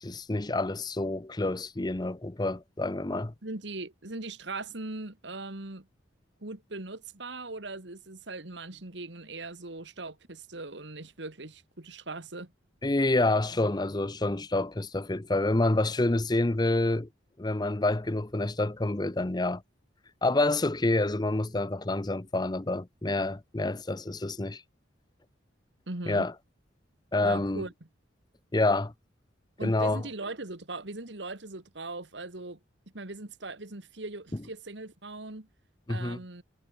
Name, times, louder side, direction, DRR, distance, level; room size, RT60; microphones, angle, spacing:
voice 1, 0.0-3.3 12.8-17.1 17.4-19.6 20.2-24.6 26.1-26.3 27.1-27.6 28.5-28.9 29.6-30.0 35.9-36.2, left 2 dB, 20° left, 0.7 m, -28 dB
voice 2, 3.4-5.9 6.4-12.5 25.9-26.3 27.2-27.9 29.6-32.6 32.9-35.5 35.9-36.4, right 2 dB, 65° right, 2.1 m, -40 dB
head